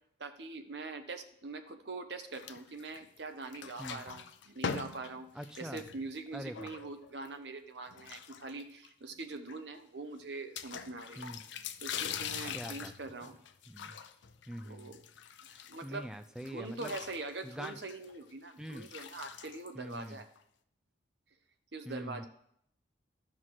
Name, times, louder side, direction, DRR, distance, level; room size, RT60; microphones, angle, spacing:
voice 1, 0.2-5.3 5.6-11.3 11.8-13.4 14.6-15.0 15.7-16.1 16.5-20.3 21.7-22.3, right 3 dB, 65° right, 7 dB, 0.9 m, -43 dB
sound 1, 2.3-3.2 3.4-7.3 7.9-8.9 9.2-9.3 9.5-9.6 10.6-16.0 16.4-20.4, left 7 dB, 80° left, 0.6 m, -43 dB
voice 2, 5.3-5.8 6.3-6.7 11.2-11.4 12.5-12.9 13.7-14.0 14.5-15.0 15.5-16.9 17.4-17.8 18.6-18.9 19.7-20.2 21.9-22.2, equal, 5° right, 8 dB, 0.4 m, -44 dB
12.5 x 5.8 x 4.8 m, 0.70 s
head